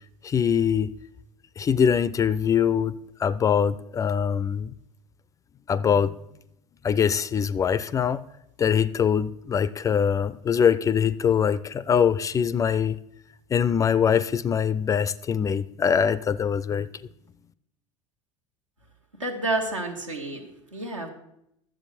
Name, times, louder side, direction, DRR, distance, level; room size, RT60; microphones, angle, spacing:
voice 1, 0.2-0.9 1.6-2.9 3.2-4.7 5.7-6.1 6.8-8.2 8.6-13.0 13.5-16.9, left 7 dB, 20° left, 17 dB, 0.3 m, -23 dB
voice 2, 19.2-20.4 20.7-21.1, right 2 dB, 80° right, 3 dB, 1.3 m, -29 dB
11.0 x 7.6 x 4.3 m, 0.78 s
figure-of-eight pair, 70°, 16 cm